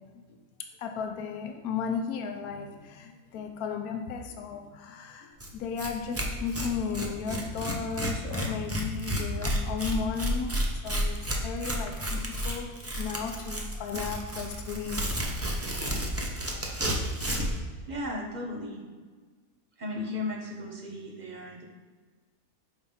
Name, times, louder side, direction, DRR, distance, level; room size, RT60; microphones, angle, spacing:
voice 1, 0.8-15.1, left 6 dB, 80° left, 3 dB, 1.2 m, -35 dB
Tearing, 5.4-5.5 5.8-5.9 6.1-17.6, equal, 20° right, 0.4 m, -31 dB
voice 2, 17.9-18.9 19.8-21.6, left 2 dB, 35° right, 1 dB, 0.9 m, -35 dB
5.4 x 4.4 x 5.5 m, 1.4 s
omnidirectional pair, 1.6 m